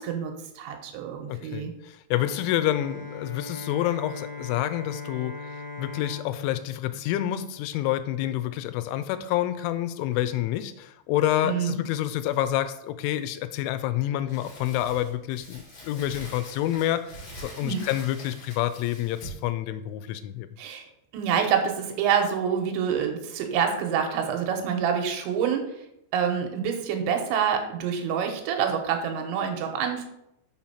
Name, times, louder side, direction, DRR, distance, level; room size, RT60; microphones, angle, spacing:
voice 1, 0.0-1.7 11.4-11.8 17.6-17.8 20.6-20.8 21.1-25.7 26.1-30.1, right 7 dB, 85° right, 4 dB, 3.3 m, -27 dB
voice 2, 1.3-5.5 5.8-20.5, left 13 dB, 90° left, 12 dB, 3.0 m, -28 dB
Bowed string instrument, 2.1-8.0, left 3 dB, 50° right, 3.1 m, -40 dB
Crumpling crinkling, 14.3-19.5, equal, 50° left, 4.3 m, -44 dB
6.9 x 4.4 x 5.7 m, 0.80 s
omnidirectional pair, 5.3 m